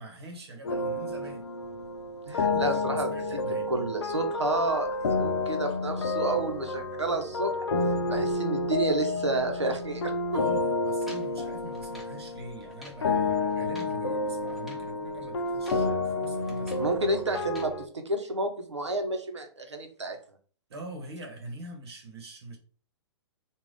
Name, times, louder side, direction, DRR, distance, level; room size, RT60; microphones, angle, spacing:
voice 1, 0.0-1.5 2.4-3.7 10.3-17.0 20.7-22.6, right 1 dB, 65° right, 1.0 m, -43 dB
sound 1, 0.6-17.9, left 2 dB, 70° left, 0.6 m, -30 dB
voice 2, 2.2-3.1 3.7-7.5 8.1-10.1 16.7-17.7 18.1-20.2, right 2 dB, 85° right, 0.8 m, -30 dB
sound 2, 11.0-12.2 12.6-13.1 13.5-14.0 14.5-14.9 15.4-15.9 16.2-16.9 17.3-17.7, equal, ahead, 1.0 m, -51 dB
3.6 x 2.4 x 3.3 m
figure-of-eight pair, 115°, 15 cm